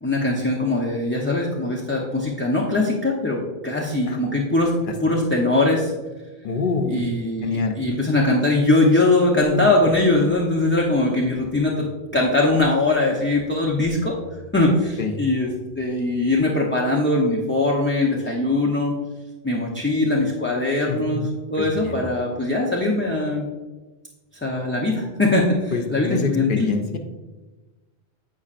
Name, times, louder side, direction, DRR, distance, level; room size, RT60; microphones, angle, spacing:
voice 1, 0.0-5.9 6.9-11.9 12.1-14.2 14.5-15.5 15.8-18.9 19.4-21.2 21.5-23.5 24.4-26.7, left 2 dB, 15° left, -3 dB, 0.5 m, -21 dB
voice 2, 6.4-7.0 7.4-7.8 9.6-9.7 15.0-15.2 20.9-21.0 21.6-22.0 25.7-27.0, left 4 dB, 55° left, 5 dB, 0.7 m, -26 dB
8.5 x 5.3 x 2.4 m, 1.2 s
omnidirectional pair, 1.1 m